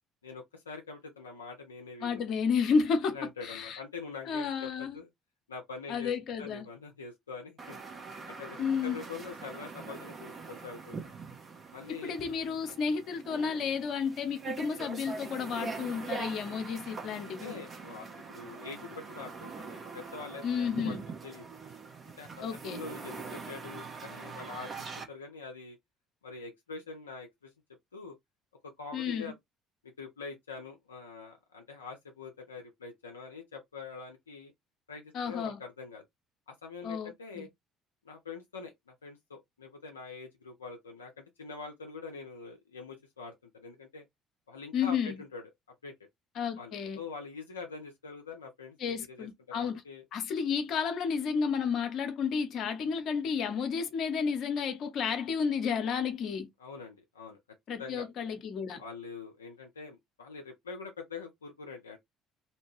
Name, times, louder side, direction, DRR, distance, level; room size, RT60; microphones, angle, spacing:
voice 1, 0.2-2.2 3.1-5.1 5.5-6.1 6.4-7.8 8.3-11.2 11.7-12.2 17.2-21.4 22.2-24.7 25.1-25.8 26.2-27.5 27.9-28.2 28.6-29.3 29.8-34.5 34.9-36.0 36.6-37.5 38.0-44.0 44.5-45.4 45.8-45.9 46.6-50.0 56.6-57.4 57.8-58.1 58.8-62.0, left 4 dB, 85° left, 0.4 m, -44 dB
voice 2, 2.0-3.2 3.4-3.8 4.3-5.0 5.9-6.7 8.6-9.0 11.9-17.6 20.4-21.0 22.4-22.8 28.9-29.3 35.1-35.6 36.8-37.5 44.7-45.2 46.4-47.0 48.8-49.8 50.1-56.5 57.7-58.8, left 6 dB, 55° left, 0.7 m, -32 dB
sound 1, 7.6-25.0, right 4 dB, 40° right, 0.9 m, -43 dB
2.7 x 2.1 x 3.1 m
hypercardioid pair, 55°, 0 cm